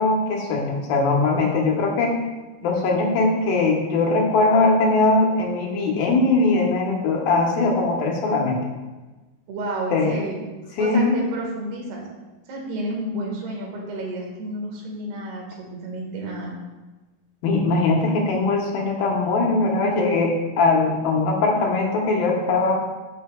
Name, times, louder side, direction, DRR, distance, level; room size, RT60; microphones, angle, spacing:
voice 1, 0.0-2.2 2.6-8.6 9.9-10.2 10.8-11.2 17.4-22.8, left 3 dB, 75° left, 0 dB, 2.8 m, -20 dB
voice 2, 9.5-10.4 10.8-12.1 12.5-16.5, right 1 dB, 90° right, -1 dB, 3.7 m, -31 dB
14.0 x 6.5 x 2.3 m, 1.2 s
omnidirectional pair, 4.4 m